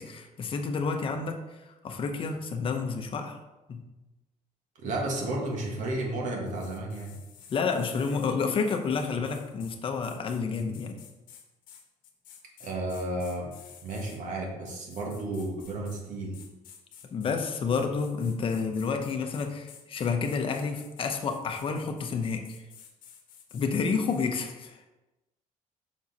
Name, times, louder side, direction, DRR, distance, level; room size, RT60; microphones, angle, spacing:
voice 1, 0.0-3.4 3.7-3.8 7.5-11.0 17.1-22.6 23.5-24.8, left 5 dB, 40° left, 5 dB, 0.8 m, -30 dB
voice 2, 4.8-7.2 12.6-13.5 13.8-16.4, right 2 dB, 60° right, 0 dB, 1.6 m, -32 dB
sound 1, 6.5-14.2 14.7-16.0 16.3-24.2, left 8 dB, 70° left, 1.0 m, -52 dB
6.3 x 4.6 x 4.1 m, 1.0 s
cardioid pair, 140°, 14 cm